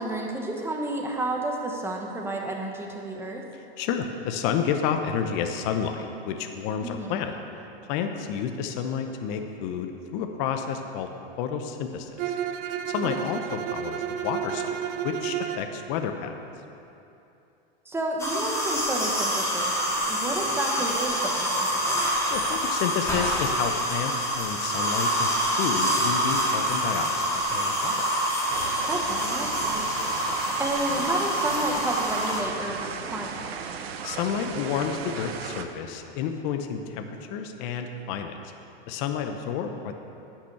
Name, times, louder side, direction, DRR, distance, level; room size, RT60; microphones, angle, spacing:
voice 1, 0.0-3.4 6.8-7.2 13.2-13.3 17.8-22.2 28.9-29.8 30.6-33.4, right 1 dB, 10° right, 0 dB, 1.2 m, -31 dB
voice 2, 3.8-7.4 7.9-11.1 11.4-12.4 12.9-16.4 22.0-28.1 34.0-38.4 38.9-39.9, left 7 dB, 50° left, 6 dB, 0.8 m, -30 dB
Bowed string instrument, 12.2-15.7, right 10 dB, 40° right, 0.6 m, -31 dB
sound 1, 18.2-32.4, equal, 10° left, 2.0 m, -26 dB
sound 2, 28.5-35.6, right 6 dB, 90° right, 0.9 m, -36 dB
10.5 x 5.8 x 6.9 m, 2.8 s
supercardioid pair, 130°, 30 cm